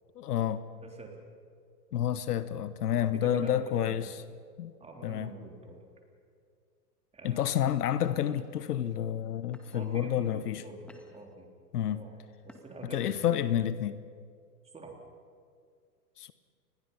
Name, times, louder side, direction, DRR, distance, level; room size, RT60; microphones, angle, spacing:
voice 1, 0.1-0.6 1.9-4.1 4.6-4.7 5.0-5.3 7.2-10.6 11.7-12.1 12.9-14.0 16.2-16.3, left 10 dB, 70° left, 14 dB, 1.1 m, -29 dB
voice 2, 0.8-1.2 2.9-4.2 4.8-5.8 7.1-7.6 8.8-9.1 9.7-11.5 11.8-12.2 12.4-13.2 14.7-15.0, right 2 dB, 15° right, 1 dB, 3.6 m, -46 dB
sound 1, 7.1-7.4 8.0-8.4 9.1-9.2 9.5-10.0 10.5-11.3 12.4-13.0, left 1 dB, ahead, 2.1 m, -54 dB
28.0 x 21.0 x 5.6 m, 2.2 s
hypercardioid pair, 115°, 48 cm